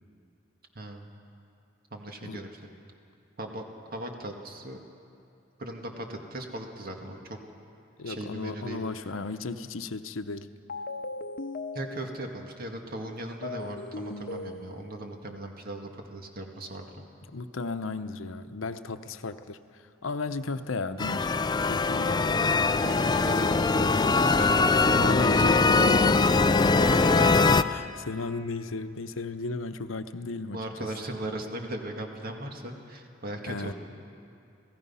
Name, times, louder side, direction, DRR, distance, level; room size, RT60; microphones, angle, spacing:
voice 1, 0.8-1.1 1.9-2.6 3.4-3.6 3.9-4.8 5.6-7.4 8.1-8.9 11.7-17.1 22.8-25.4 26.8-27.3 30.5-33.7, right 1 dB, 50° right, 3 dB, 1.9 m, -38 dB
voice 2, 8.0-10.6 17.3-19.6 20.0-21.4 21.7-22.5 24.8-26.8 27.2-27.4 27.7-30.6 33.5-33.7, left 3 dB, 85° left, 10 dB, 0.8 m, -35 dB
sound 1, 10.7-12.4 13.4-15.1, left 2 dB, 50° left, 0.8 m, -38 dB
sound 2, 21.0-27.6, left 3 dB, 20° left, 0.4 m, -22 dB
29.0 x 17.0 x 5.6 m, 2.6 s
head